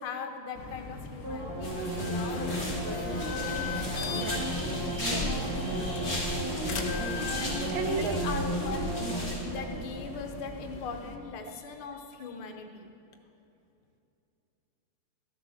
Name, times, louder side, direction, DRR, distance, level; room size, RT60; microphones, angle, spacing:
voice 1, 0.0-3.0 7.4-9.1 9.4-12.9, left 5 dB, 75° left, 4 dB, 1.9 m, -40 dB
sound 1, 0.5-11.1, left 3 dB, 55° left, 1.1 m, -39 dB
sound 2, 1.2-10.6 11.0-11.1, right 1 dB, 50° right, 2.2 m, -34 dB
sound 3, 1.6-9.4, left 1 dB, 25° left, 2.5 m, -37 dB
voice 2, 4.7-5.5 7.7-8.2, right 6 dB, 70° right, 7 dB, 1.4 m, -35 dB
13.5 x 7.3 x 6.3 m, 2.8 s
omnidirectional pair, 2.4 m